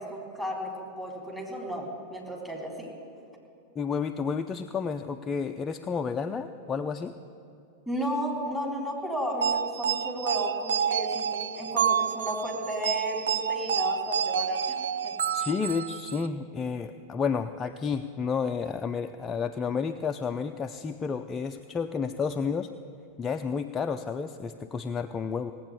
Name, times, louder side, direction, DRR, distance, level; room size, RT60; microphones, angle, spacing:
voice 1, 0.0-2.9 7.9-15.1 15.4-15.5, equal, 5° right, 0 dB, 3.7 m, -34 dB
voice 2, 3.8-7.1 15.3-22.7 23.2-25.5, left 5 dB, 20° left, 7 dB, 0.5 m, -31 dB
sound 1, 9.4-16.3, right 8 dB, 65° right, 0.4 m, -29 dB
17.5 x 8.4 x 9.5 m, 2.6 s
figure-of-eight pair, 90°, 0 cm